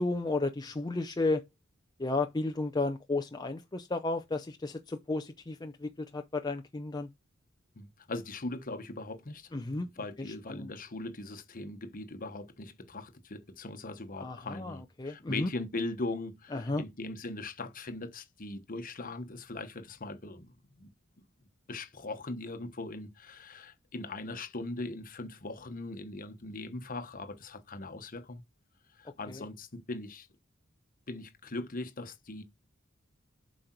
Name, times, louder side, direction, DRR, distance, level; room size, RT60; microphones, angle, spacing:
voice 1, 0.0-1.4 2.0-7.1 9.5-9.9 10.2-10.7 14.2-15.5 16.5-16.8 29.0-29.4, left 2 dB, 20° left, 0.6 m, -33 dB
voice 2, 7.7-9.5 10.0-20.9 21.7-28.4 28.9-30.3 31.1-32.4, left 2 dB, 45° left, 1.1 m, -40 dB
7.7 x 5.2 x 4.5 m
head